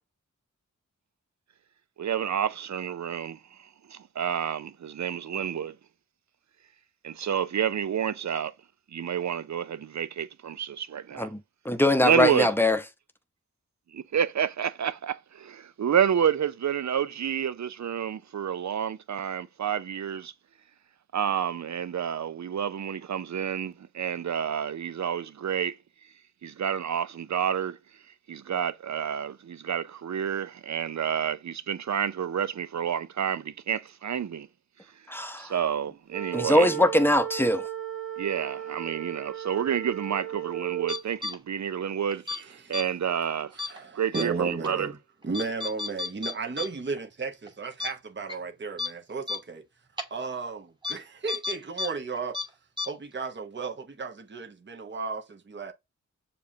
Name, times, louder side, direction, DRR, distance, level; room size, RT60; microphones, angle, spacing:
voice 1, 2.0-5.8 7.0-8.5 8.9-11.3 12.0-12.5 13.9-20.3 21.1-25.8 26.4-27.8 28.3-34.5 35.1-36.7 38.2-43.5 43.9-44.9, right 8 dB, 60° right, 0.6 m, -29 dB
voice 2, 11.2-12.8 35.1-35.5 36.3-37.7, left 1 dB, 5° left, 0.7 m, -22 dB
sound 1, 36.1-41.0, right 11 dB, 80° right, 1.1 m, -35 dB
sound 2, 40.9-41.3 42.1-42.4 42.7-42.8 43.6-43.8 44.1-44.2 44.6-44.7 45.3-46.7 47.0-47.1 47.5-47.6 47.8-47.9 48.3-48.4 48.8-48.9 49.3-49.4 50.0-50.1 50.8-50.9 51.3-51.9 52.1-52.4 52.8-52.9, left 4 dB, 15° right, 1.3 m, -31 dB
voice 3, 42.3-42.9 43.6-45.0 45.2-49.6 50.1-52.4 52.8-55.7, right 4 dB, 35° right, 0.8 m, -34 dB
6.8 x 2.5 x 2.7 m
cardioid pair, 50°, 32 cm